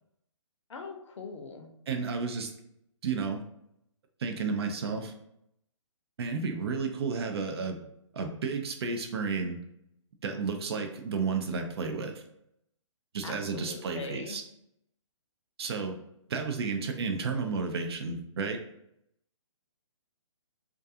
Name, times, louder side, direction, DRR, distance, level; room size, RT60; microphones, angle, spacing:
voice 1, 0.7-1.7 13.2-14.4, left 4 dB, 65° left, 4 dB, 0.5 m, -41 dB
voice 2, 1.9-2.5 3.0-3.4 4.2-5.1 6.2-7.8 8.1-9.6 10.2-12.2 13.1-14.4 15.6-16.0 16.3-18.6, right 4 dB, 50° right, 4 dB, 0.4 m, -32 dB
2.3 x 2.3 x 2.6 m, 0.77 s
hypercardioid pair, 155°, 17 cm